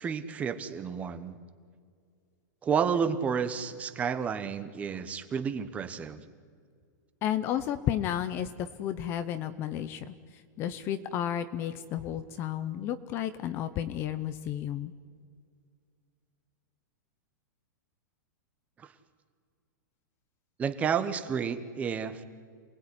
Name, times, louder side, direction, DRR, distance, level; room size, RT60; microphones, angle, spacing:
voice 1, 0.0-1.3 2.6-6.2 18.8-18.9 20.6-22.2, right 6 dB, 15° right, 11 dB, 1.1 m, -31 dB
voice 2, 7.2-10.1 10.6-14.9, left 10 dB, 25° left, 12 dB, 0.7 m, -32 dB
27.5 x 19.0 x 9.9 m, 2.1 s
supercardioid pair, 170°, 10 cm